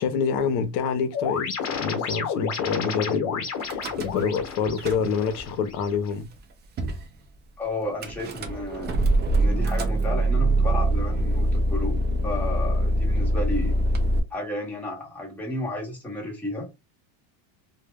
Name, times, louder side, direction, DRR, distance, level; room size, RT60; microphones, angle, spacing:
voice 1, 0.0-6.3, left 6 dB, 65° left, 0.7 m, -27 dB
sound 1, 1.1-6.1, left 6 dB, 40° left, 0.9 m, -31 dB
Car / Engine starting / Idling, 3.6-4.4 4.7-5.4 6.1-6.2 6.4-6.5 6.8-7.1 8.0-14.2, right 1 dB, 25° right, 0.3 m, -24 dB
voice 2, 7.6-12.0 12.2-13.8 14.3-16.7, left 1 dB, 5° left, 0.9 m, -32 dB
2.2 x 2.1 x 3.3 m
cardioid pair, 145°, 42 cm